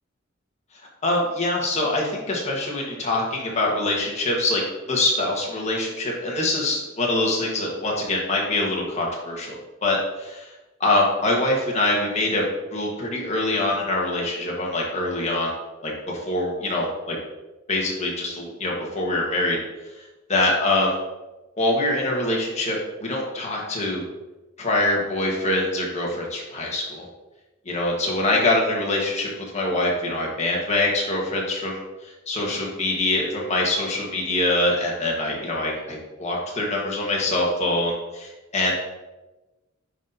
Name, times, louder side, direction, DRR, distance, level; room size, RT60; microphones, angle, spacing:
voice 1, 1.0-4.6 4.9-10.5 10.8-15.5 15.8-17.1 17.7-19.6 20.3-21.0 21.6-24.0 24.6-27.1 27.6-38.8, left 2 dB, 35° left, -2 dB, 1.4 m, -24 dB
9.6 x 4.1 x 2.7 m, 1.1 s
head